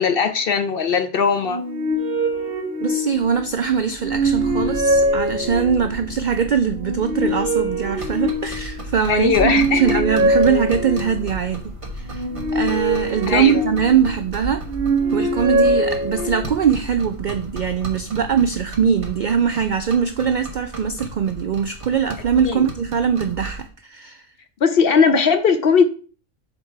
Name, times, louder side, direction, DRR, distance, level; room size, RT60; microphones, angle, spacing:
voice 1, 0.0-1.6 9.1-9.8 13.3-13.6 22.4-22.6 24.6-25.8, left 6 dB, 55° left, 0.7 m, -18 dB
sound 1, 1.4-3.5 4.0-6.0 6.7-8.9 9.3-11.4 12.1-14.2 14.7-16.7, right 1 dB, 50° right, 1.1 m, -23 dB
voice 2, 2.8-12.3 12.5-14.6 15.1-24.3, right 7 dB, 70° right, 0.4 m, -21 dB
sound 2, 3.1-21.0, right 1 dB, 80° left, 2.2 m, -39 dB
sound 3, 7.9-23.7, right 2 dB, 30° right, 1.0 m, -35 dB
6.7 x 3.6 x 4.5 m
omnidirectional pair, 1.3 m